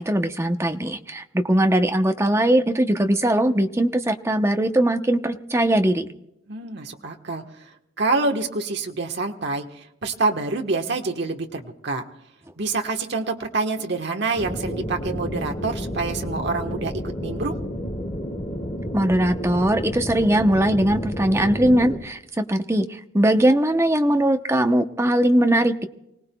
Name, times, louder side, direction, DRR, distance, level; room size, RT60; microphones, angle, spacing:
voice 1, 0.0-6.1 18.9-22.9 23.1-25.8, right 1 dB, 15° right, 6 dB, 0.8 m, -20 dB
voice 2, 6.5-7.4 8.0-12.0 12.6-16.9 17.2-17.6, right 3 dB, 60° right, 3 dB, 1.3 m, -26 dB
sound 1, 14.4-22.0, equal, 35° left, 1.9 m, -31 dB
29.0 x 18.5 x 2.3 m, 0.85 s
head